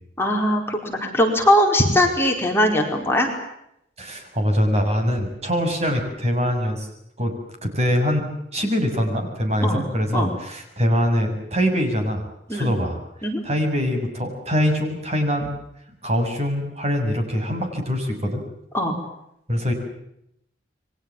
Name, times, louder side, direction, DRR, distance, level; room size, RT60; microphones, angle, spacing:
voice 1, 0.2-3.3 9.6-9.9 10.1-10.3 12.5-12.7 13.2-13.4 18.7-19.0, left 1 dB, 15° left, 1 dB, 4.7 m, -20 dB
voice 2, 4.0-6.9 7.2-8.3 8.5-13.0 13.4-15.5 16.0-18.4 19.5-19.7, equal, 40° right, 5 dB, 6.9 m, -23 dB
29.5 x 23.5 x 7.3 m, 0.78 s
head